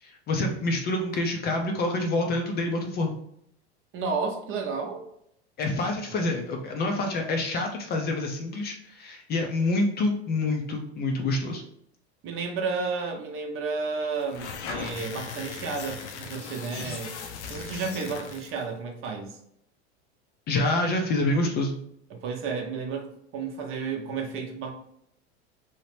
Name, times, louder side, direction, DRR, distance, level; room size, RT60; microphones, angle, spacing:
voice 1, 0.0-3.1 5.6-11.6 20.5-21.7, left 2 dB, 30° left, 3 dB, 0.4 m, -27 dB
voice 2, 3.9-5.0 6.1-6.3 12.2-17.2 17.5-19.4 22.1-24.7, right 4 dB, 40° right, 1 dB, 0.7 m, -32 dB
sound 1, 14.2-18.6, left 6 dB, 85° left, 0.6 m, -38 dB
2.8 x 2.0 x 3.2 m, 0.72 s
hypercardioid pair, 105°, 34 cm